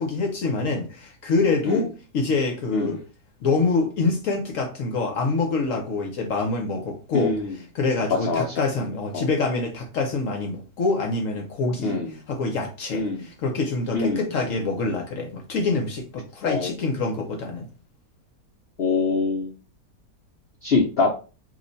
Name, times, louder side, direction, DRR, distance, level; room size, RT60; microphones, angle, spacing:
voice 1, 0.0-3.0 3.4-7.3 7.7-17.7, left 3 dB, 60° left, 2 dB, 0.9 m, -26 dB
voice 2, 7.1-7.5 8.1-8.6 9.1-9.3 11.8-12.1 12.9-13.3 13.9-14.3 16.5-16.8 18.8-19.5 20.6-21.1, left 4 dB, 80° left, 0 dB, 0.5 m, -24 dB
3.0 x 2.1 x 3.8 m, 0.34 s
omnidirectional pair, 1.8 m